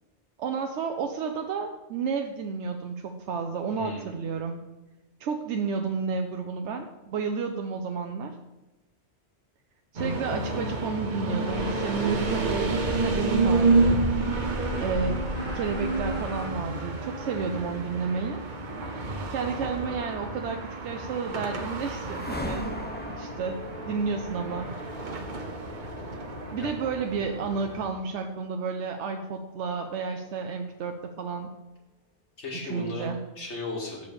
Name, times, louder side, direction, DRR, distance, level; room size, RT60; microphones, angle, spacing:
voice 1, 0.4-4.6 5.2-8.3 9.9-14.0 14.8-15.2 15.5-18.4 19.3-22.7 23.2-24.7 26.5-31.5 32.5-33.2, right 5 dB, 80° right, 4 dB, 0.9 m, -31 dB
voice 2, 3.7-4.3 26.6-26.7 32.4-34.1, left 2 dB, 75° left, -3 dB, 2.2 m, -36 dB
sound 1, 10.0-27.9, right 3 dB, 45° right, 1.0 m, -30 dB
sound 2, 11.5-16.5, equal, 10° right, 1.6 m, -35 dB
sound 3, 21.3-30.8, equal, 10° left, 0.6 m, -42 dB
6.9 x 4.7 x 6.8 m, 1.1 s
omnidirectional pair, 1.2 m